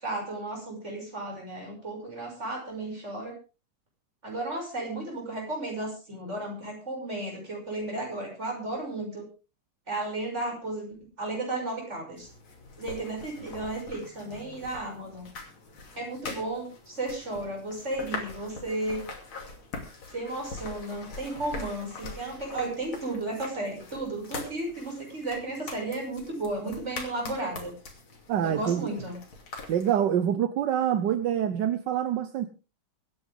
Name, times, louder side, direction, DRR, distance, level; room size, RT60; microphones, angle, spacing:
voice 1, 0.0-3.3 4.2-9.2 9.9-12.3 12.8-15.3 16.0-19.0 20.1-27.7 28.4-29.2, right 2 dB, 30° right, 0 dB, 6.5 m, -34 dB
sound 1, 12.2-30.0, left 3 dB, 65° left, 3.5 m, -43 dB
voice 2, 28.3-28.9 29.7-32.5, right 10 dB, 65° right, 11 dB, 1.4 m, -26 dB
24.0 x 10.0 x 3.6 m, 0.33 s
omnidirectional pair, 2.4 m